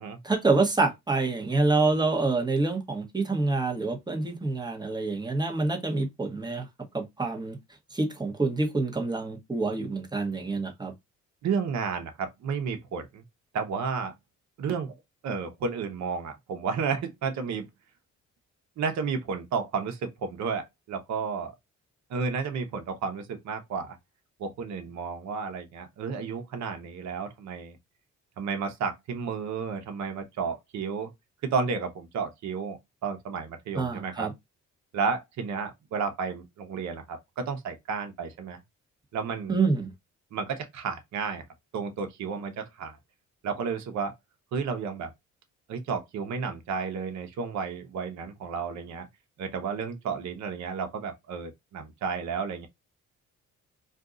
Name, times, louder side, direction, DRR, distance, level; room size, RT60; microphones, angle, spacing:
voice 1, 0.2-6.7 6.9-7.6 7.9-10.9 33.7-34.3 39.5-39.9, right 3 dB, 15° right, 1.0 m, -27 dB
voice 2, 11.4-13.2 13.5-14.1 14.6-14.9 15.2-17.7 18.8-21.5 22.1-24.0 24.4-27.8 28.4-31.1 31.4-34.3 34.9-38.6 39.1-39.6 40.3-41.4 41.7-43.0 43.4-44.1 44.5-45.1 45.7-49.1 49.4-52.7, right 5 dB, 65° right, 0.8 m, -32 dB
2.6 x 2.3 x 3.7 m
cardioid pair, 90°, 30 cm